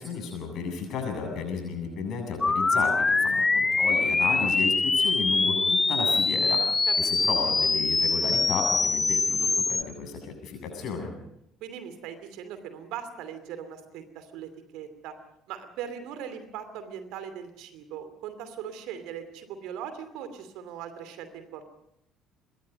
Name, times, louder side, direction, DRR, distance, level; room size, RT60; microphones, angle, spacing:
voice 1, 0.0-2.9 3.2-6.6 7.0-11.1, left 5 dB, 50° left, 4 dB, 7.9 m, -33 dB
sound 1, 2.4-9.8, left 3 dB, 20° left, 1.3 m, -24 dB
voice 2, 11.6-15.1 15.5-21.6, right 8 dB, 60° right, 10 dB, 2.7 m, -40 dB
25.0 x 22.0 x 5.4 m, 0.76 s
figure-of-eight pair, 55°, 0 cm